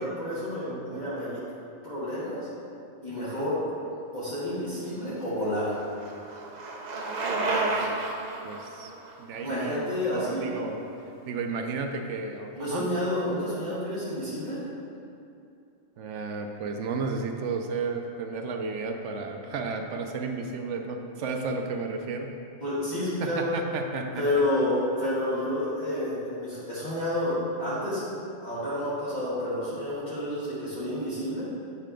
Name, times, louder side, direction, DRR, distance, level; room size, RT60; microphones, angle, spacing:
voice 1, 0.0-1.4 1.8-2.5 3.0-3.6 4.1-5.8 9.4-10.5 12.5-14.6 22.6-23.5 24.2-28.0 28.4-31.5, left 1 dB, 40° left, -12 dB, 1.6 m, -29 dB
voice 2, 0.7-1.0 3.2-3.5 7.4-8.1 8.4-8.9 9.2-10.8 11.3-12.9 16.0-22.3 22.9-24.2, right 4 dB, 80° right, 4 dB, 0.9 m, -33 dB
Bicycle, 4.9-10.9, right 3 dB, 50° right, 0.6 m, -32 dB
8.3 x 3.3 x 5.0 m, 2.6 s
omnidirectional pair, 1.2 m